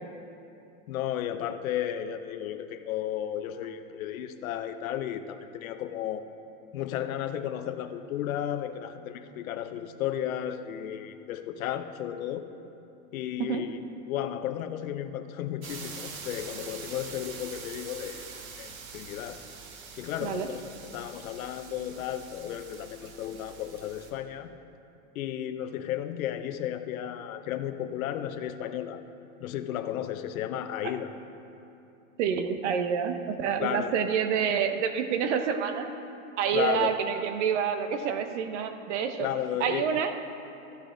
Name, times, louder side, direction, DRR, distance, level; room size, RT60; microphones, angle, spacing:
voice 1, 0.9-6.3 6.7-12.5 13.1-13.8 14.1-19.4 20.0-24.5 25.1-29.0 29.4-31.1 33.6-33.9 36.5-36.9 39.2-40.0, left 11 dB, 80° left, 9 dB, 0.8 m, -34 dB
sound 1, 15.6-24.1, right 5 dB, 80° right, 1.5 m, -44 dB
voice 2, 32.2-35.9 36.4-39.3 39.6-40.1, right 7 dB, 60° right, 7 dB, 0.9 m, -28 dB
14.0 x 8.3 x 3.9 m, 2.8 s
supercardioid pair, 160°, 41 cm